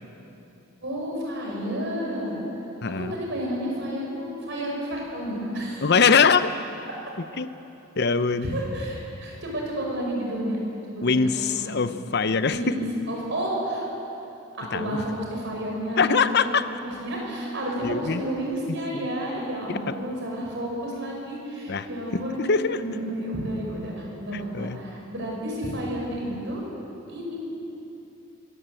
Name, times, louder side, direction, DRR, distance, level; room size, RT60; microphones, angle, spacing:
voice 1, 0.8-2.4 3.0-5.9 8.4-10.6 10.8-11.8 12.4-13.8 14.5-16.6 16.8-22.4 22.8-26.6 27.1-27.4, equal, 60° right, -2 dB, 5.6 m, -31 dB
voice 2, 2.8-3.1 5.8-6.5 7.4-7.5 8.0-8.5 11.0-12.8 14.7-15.0 16.0-16.6 17.8-18.2 18.9-19.1 19.7-19.9 21.7-21.9 22.1-22.8 24.3-24.8, left 5 dB, 55° left, 12 dB, 0.7 m, -23 dB
23.0 x 14.5 x 7.9 m, 2.9 s
head